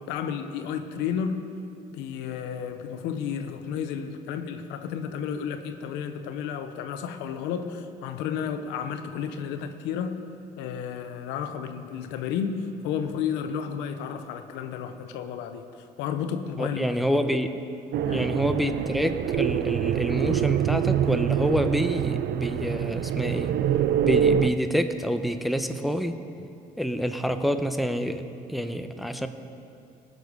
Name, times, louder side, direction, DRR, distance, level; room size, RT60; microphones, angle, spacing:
voice 1, 0.0-1.4 1.9-10.1 10.6-16.9 18.0-18.3, left 7 dB, 90° left, 8 dB, 0.8 m, -32 dB
voice 2, 16.6-17.6 18.1-23.5 24.0-26.2 26.8-28.2 28.5-29.3, equal, ahead, 7 dB, 0.8 m, -27 dB
sound 1, 17.9-24.5, right 9 dB, 70° right, 0.5 m, -25 dB
19.0 x 6.6 x 5.4 m, 2.5 s
supercardioid pair, 70°, 18 cm